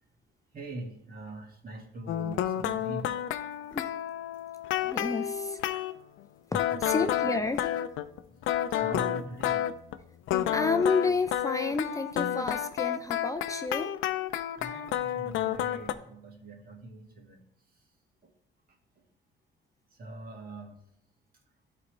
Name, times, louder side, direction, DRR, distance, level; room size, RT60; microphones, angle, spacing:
voice 1, 0.5-3.2 5.7-5.8 6.7-7.2 8.3-8.4 8.7-9.7 14.6-17.5 18.2-18.3 19.9-20.8, right 2 dB, 45° right, 1 dB, 2.0 m, -43 dB
sound 1, 2.1-6.0 6.5-9.9 10.3-15.9, left 11 dB, 90° left, 0.5 m, -30 dB
voice 2, 4.8-5.6 6.5-7.8 10.5-13.9, left 4 dB, 15° left, 7 dB, 0.5 m, -30 dB
12.0 x 4.2 x 3.3 m, 0.73 s
cardioid pair, 90°, 20 cm